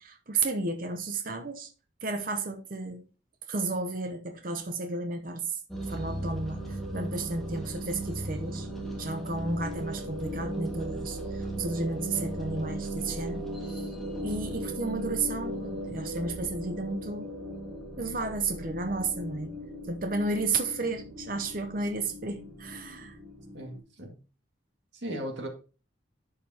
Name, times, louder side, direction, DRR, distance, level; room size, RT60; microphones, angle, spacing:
voice 1, 0.0-1.7 2.0-3.0 3.5-5.6 5.9-8.7 9.0-13.9 14.2-17.3 18.0-19.5 19.9-23.2, right 3 dB, 45° right, 0.7 m, -33 dB
sound 1, 5.7-23.8, right 1 dB, ahead, 1.8 m, -37 dB
voice 2, 23.5-24.1 24.9-25.5, right 1 dB, 65° right, 2.1 m, -37 dB
11.5 x 5.0 x 2.9 m
head